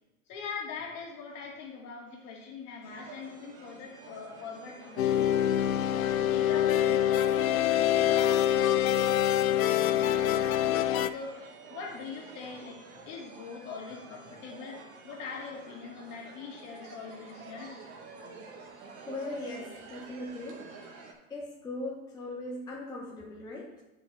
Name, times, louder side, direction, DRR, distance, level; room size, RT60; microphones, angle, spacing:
voice 1, 0.3-5.3 5.9-11.4 11.7-17.9, left 5 dB, 40° left, -1 dB, 2.1 m, -42 dB
sound 1, 2.8-21.1, right 4 dB, 50° right, 1.7 m, -49 dB
sound 2, 5.0-11.1, left 11 dB, 75° left, 0.6 m, -25 dB
voice 2, 19.1-20.8 21.3-23.8, left 2 dB, 10° left, -3 dB, 0.9 m, -39 dB
9.0 x 5.5 x 3.2 m, 1.0 s
hypercardioid pair, 120°, 41 cm